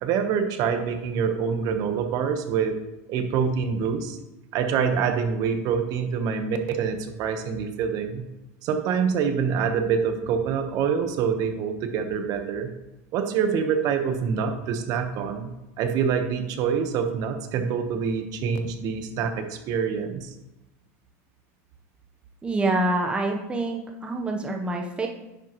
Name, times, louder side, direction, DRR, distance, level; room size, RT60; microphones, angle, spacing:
voice 1, 0.0-2.8 3.1-4.2 4.5-8.3 8.6-12.7 13.1-20.3, right 6 dB, 50° right, 6 dB, 1.2 m, -26 dB
voice 2, 22.4-25.1, right 2 dB, 15° right, 1 dB, 1.0 m, -26 dB
10.5 x 7.5 x 3.1 m, 0.98 s
supercardioid pair, 120°, 8 cm